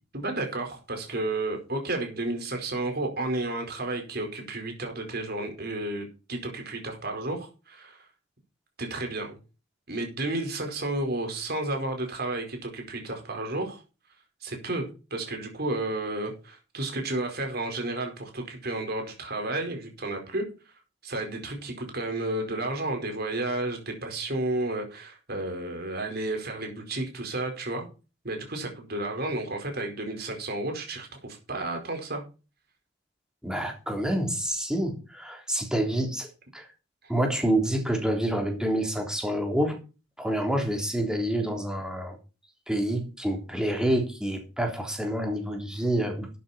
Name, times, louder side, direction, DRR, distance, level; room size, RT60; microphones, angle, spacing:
voice 1, 0.1-8.0 8.8-9.3 9.9-13.8 14.4-20.5 21.0-27.9 28.2-32.2, right 2 dB, 55° right, 4.8 m, -32 dB
voice 2, 33.4-36.7 37.1-39.8 40.2-42.2 42.7-46.3, right 1 dB, 5° right, 3.4 m, -28 dB
13.0 x 9.2 x 4.3 m
head